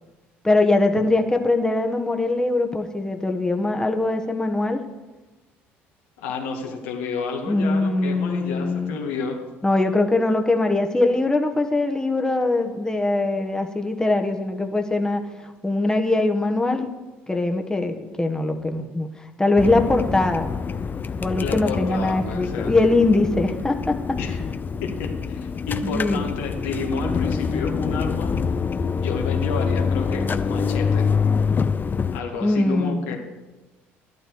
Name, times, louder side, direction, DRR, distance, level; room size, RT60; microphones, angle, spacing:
voice 1, 0.4-4.8 7.5-9.0 9.6-15.2 15.6-16.9 17.3-20.5 21.2-24.2 25.8-26.2 32.4-33.2, left 2 dB, 10° left, 4 dB, 1.4 m, -22 dB
voice 2, 6.2-9.4 21.4-22.7 24.2-24.4 24.8-28.4 29.0-31.1 32.1-33.2, left 4 dB, 85° left, 1 dB, 2.0 m, -30 dB
sound 1, 19.6-32.2, left 5 dB, 35° left, 0.7 m, -25 dB
11.5 x 11.5 x 4.7 m, 1.1 s
hypercardioid pair, 65°, 6 cm